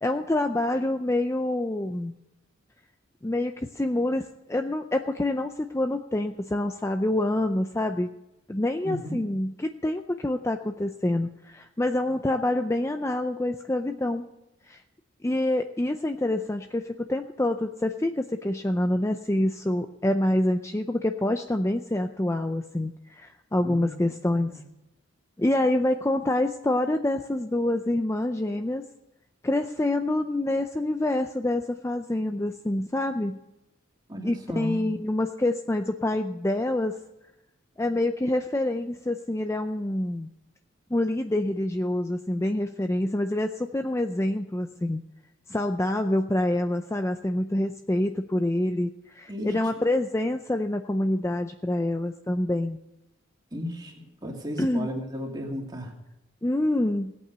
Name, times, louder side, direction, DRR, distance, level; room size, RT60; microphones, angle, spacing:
voice 1, 0.0-2.1 3.2-8.1 8.5-14.3 14.7-14.8 15.2-24.5 25.4-28.8 29.4-33.4 34.2-36.9 37.8-40.3 40.9-45.0 45.5-52.8 54.6-54.9 56.4-57.1, left 1 dB, 15° left, 6 dB, 0.5 m, -26 dB
voice 2, 8.8-9.3 23.6-24.6 34.1-34.9 49.3-49.9 53.5-56.0, left 1 dB, 20° right, 0 dB, 2.5 m, -35 dB
17.5 x 8.7 x 6.7 m, 0.94 s
head